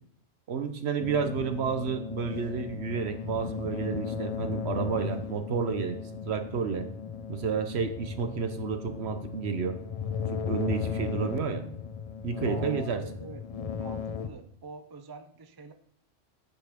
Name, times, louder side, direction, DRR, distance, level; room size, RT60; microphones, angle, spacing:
voice 1, 0.5-6.0 6.2-6.9 7.3-9.8 10.3-11.7 12.2-13.0, right 6 dB, 60° right, 9 dB, 1.1 m, -30 dB
sound 1, 1.0-14.3, left 6 dB, 50° left, 0.4 m, -36 dB
voice 2, 12.4-13.4 13.8-15.7, right 3 dB, 30° right, 8 dB, 0.5 m, -45 dB
9.1 x 5.6 x 5.1 m, 0.66 s
omnidirectional pair, 1.3 m